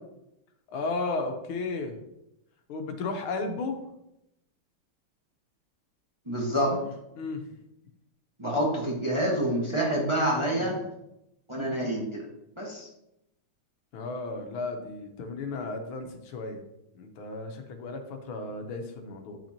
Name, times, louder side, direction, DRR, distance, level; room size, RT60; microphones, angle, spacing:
voice 1, 0.7-2.0 2.7-3.8 6.7-6.8 7.2-7.6 13.9-16.6 16.9-19.4, left 3 dB, 85° left, 5 dB, 1.8 m, -34 dB
voice 2, 6.3-6.8 8.4-10.8 11.5-12.2 12.6-12.9, right 1 dB, 15° right, -3 dB, 1.2 m, -27 dB
9.9 x 6.0 x 2.9 m, 0.85 s
omnidirectional pair, 2.3 m